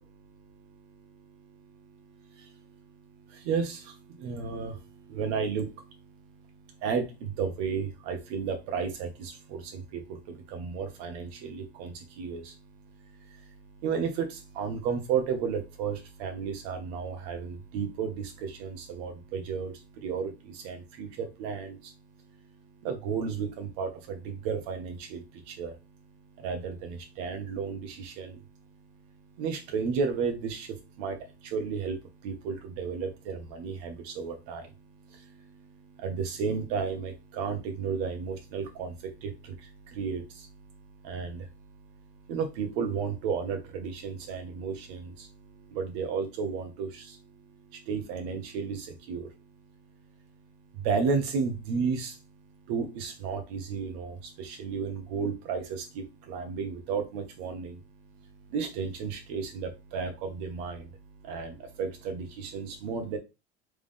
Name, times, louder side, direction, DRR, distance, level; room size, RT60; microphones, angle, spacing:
voice 1, 0.1-22.0 22.3-22.4 22.8-25.8 26.4-28.4 29.4-49.5 50.7-52.3 52.7-57.8 58.2-63.2, right 6 dB, 75° right, 5 dB, 1.3 m, -34 dB
3.6 x 3.3 x 3.6 m, 0.26 s
supercardioid pair, 100°, 32 cm